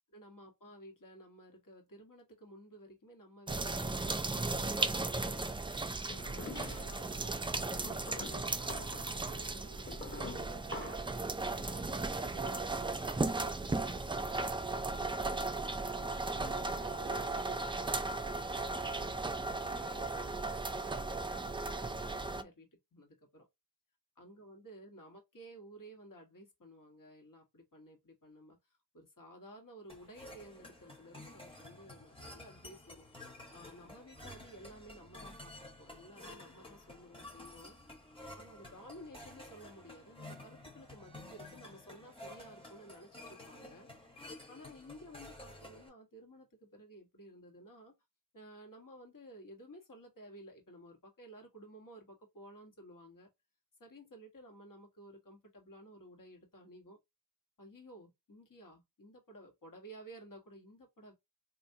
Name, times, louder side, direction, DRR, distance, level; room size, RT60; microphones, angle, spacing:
voice 1, 0.1-5.5 6.1-17.9 18.6-23.5 24.2-33.0 33.5-35.5 35.8-37.7 38.4-43.9 44.5-47.9 48.3-53.3 53.8-57.0 57.6-61.1, equal, 55° left, 1.4 m, -54 dB
sound 1, 3.5-22.4, right 3 dB, 15° right, 0.4 m, -36 dB
sound 2, 6.1-7.1 7.7-11.2, left 2 dB, 30° left, 1.2 m, -46 dB
sound 3, 29.9-45.9, left 1 dB, 15° left, 1.1 m, -52 dB
3.4 x 2.6 x 2.7 m
cardioid pair, 50°, 38 cm